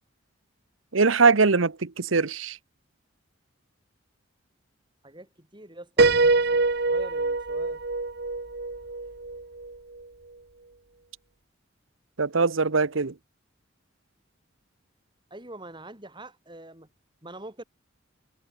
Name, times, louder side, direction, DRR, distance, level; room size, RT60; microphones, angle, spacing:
voice 1, 0.9-2.6 12.2-13.1, right 4 dB, 85° right, 1.0 m, -22 dB
voice 2, 5.0-7.8 15.3-16.9 17.2-17.6, right 1 dB, 25° right, 4.8 m, -45 dB
Piano, 6.0-9.7, right 3 dB, 55° right, 1.3 m, -24 dB
head